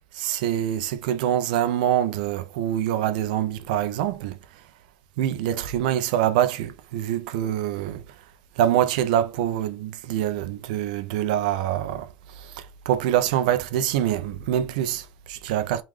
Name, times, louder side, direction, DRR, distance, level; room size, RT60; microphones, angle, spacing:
voice 1, 0.1-4.4 5.2-8.0 8.6-12.1 12.4-15.8, right 11 dB, 80° right, 0.5 m, -25 dB
3.8 x 2.5 x 3.1 m
supercardioid pair, 100°, 4 cm